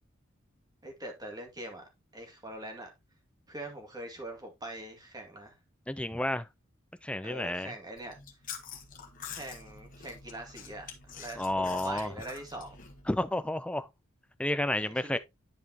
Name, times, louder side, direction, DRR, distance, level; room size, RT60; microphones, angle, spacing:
voice 1, 0.8-1.8 2.1-2.9 3.5-5.6 7.2-8.1 9.3-12.8 14.7-15.2, right 1 dB, 20° right, 2.2 m, -43 dB
voice 2, 5.9-6.5 7.0-7.7 11.4-12.1 13.1-13.9 14.4-15.2, left 1 dB, 5° left, 0.5 m, -31 dB
Chewing mastication, 8.0-13.3, left 6 dB, 45° left, 1.6 m, -46 dB
10.5 x 5.1 x 2.8 m
head